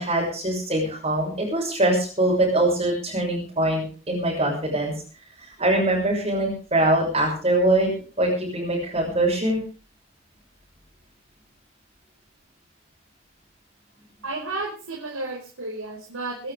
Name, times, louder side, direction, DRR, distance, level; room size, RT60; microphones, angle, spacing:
voice 1, 0.0-4.9 5.4-9.6, right 1 dB, 30° right, -3 dB, 6.6 m, -23 dB
voice 2, 14.2-16.5, right 2 dB, 85° right, -3 dB, 5.3 m, -32 dB
25.0 x 12.0 x 3.5 m, 0.39 s
head